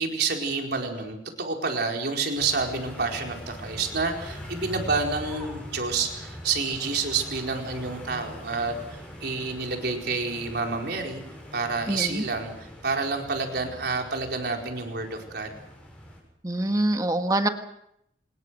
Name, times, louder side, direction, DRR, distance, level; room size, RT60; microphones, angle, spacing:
voice 1, 0.0-11.2 11.5-15.6, right 4 dB, 60° right, 2 dB, 4.6 m, -29 dB
sound 1, 2.4-16.2, equal, 5° left, 7.1 m, -42 dB
voice 2, 11.9-12.2 16.4-17.5, right 1 dB, 20° right, 6 dB, 1.6 m, -25 dB
25.5 x 21.0 x 6.5 m, 0.78 s
head